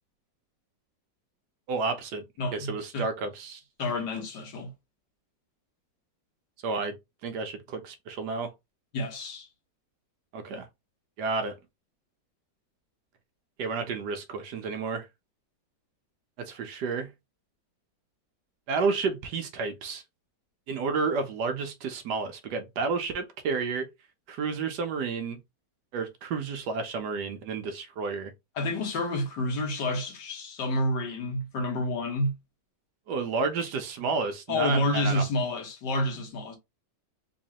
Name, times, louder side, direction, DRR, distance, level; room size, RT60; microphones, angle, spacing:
voice 1, 1.7-2.2 2.5-3.6 6.6-6.9 7.2-8.5 10.3-10.7 11.2-11.5 13.6-15.1 16.4-17.1 18.7-20.0 20.7-23.9 24.3-25.4 25.9-28.3 33.1-35.2, right 4 dB, 70° right, 1.2 m, -31 dB
voice 2, 2.4-3.1 3.8-4.7 8.9-9.5 28.6-32.3 34.5-36.6, left 1 dB, 70° left, 1.7 m, -29 dB
3.8 x 3.1 x 2.8 m
omnidirectional pair, 2.0 m